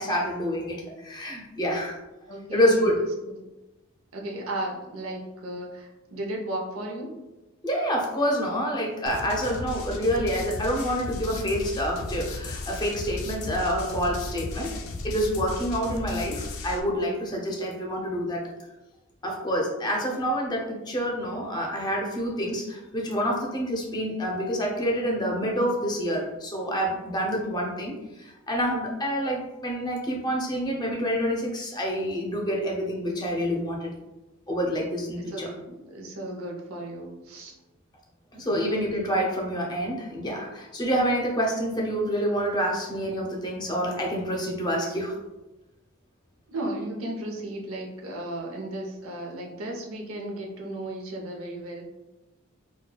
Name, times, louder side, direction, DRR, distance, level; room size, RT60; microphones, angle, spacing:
voice 1, 0.0-2.0 2.5-3.0 7.6-14.7 15.0-18.5 19.2-33.9 34.5-35.5 38.3-45.1, equal, 20° left, -1 dB, 0.6 m, -27 dB
voice 2, 2.3-2.8 3.3-3.4 4.1-7.2 35.3-37.6 46.5-51.8, right 1 dB, 85° right, 0 dB, 0.7 m, -35 dB
sound 1, 9.1-16.8, left 2 dB, 85° left, 0.5 m, -35 dB
4.6 x 2.2 x 2.2 m, 1.1 s
head